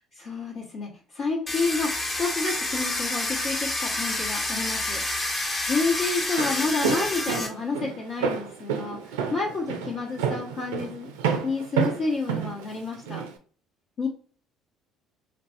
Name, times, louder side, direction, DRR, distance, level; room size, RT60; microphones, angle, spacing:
voice 1, 0.2-5.0 5.7-11.1 11.4-13.2 14.0-14.1, left 3 dB, 55° left, -7 dB, 1.2 m, -29 dB
Domestic sounds home sounds, 1.5-7.5, left 2 dB, 30° left, 1.2 m, -28 dB
Walk footsteps, 6.2-13.3, right 7 dB, 80° right, 0.5 m, -29 dB
3.7 x 2.6 x 2.4 m, 0.43 s
hypercardioid pair, 60°, 0 cm